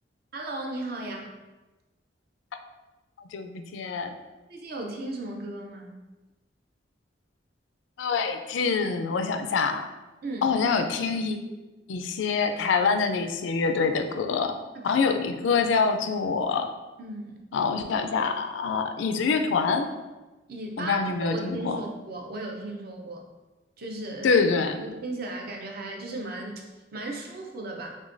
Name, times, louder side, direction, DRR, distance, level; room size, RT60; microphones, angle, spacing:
voice 1, 0.3-1.3 4.5-6.0 10.2-10.5 14.9-15.0 15.5-15.6 17.0-17.4 20.5-23.3 23.8-24.3 24.8-28.0, right 2 dB, 55° right, 1 dB, 0.6 m, -36 dB
voice 2, 3.3-4.1 8.0-9.8 10.4-11.4 11.9-14.6 14.8-16.7 17.5-19.9 20.8-21.8 24.2-24.8, left 5 dB, 75° left, 7 dB, 0.4 m, -25 dB
6.1 x 2.2 x 2.5 m, 1.1 s
head